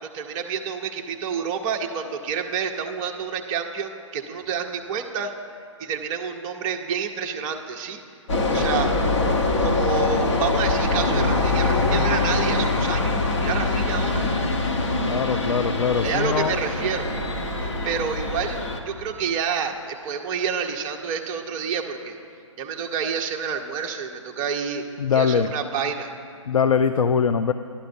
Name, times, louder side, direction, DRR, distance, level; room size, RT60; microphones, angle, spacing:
voice 1, 0.0-5.3 5.8-8.0 8.5-8.9 9.6-14.3 16.0-17.1 17.6-18.6 18.9-22.2 22.6-26.1, right 6 dB, 20° right, 2 dB, 0.5 m, -29 dB
sound 1, 8.3-18.8, left 2 dB, 60° left, 1.2 m, -23 dB
voice 2, 15.0-16.5 25.0-25.5 26.5-27.5, left 6 dB, 85° left, 10 dB, 0.4 m, -22 dB
13.0 x 11.5 x 2.6 m, 2.4 s
figure-of-eight pair, 145°, 17 cm